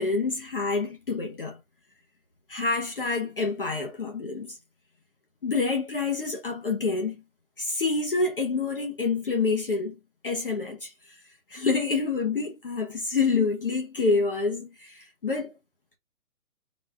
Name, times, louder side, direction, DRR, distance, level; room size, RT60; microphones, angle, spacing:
voice 1, 0.0-1.6 2.5-4.6 5.4-7.2 7.6-10.0 10.2-11.2 11.5-15.5, left 4 dB, 40° left, 0.9 m, -27 dB
4.0 x 2.3 x 4.7 m
hypercardioid pair, 180°, 42 cm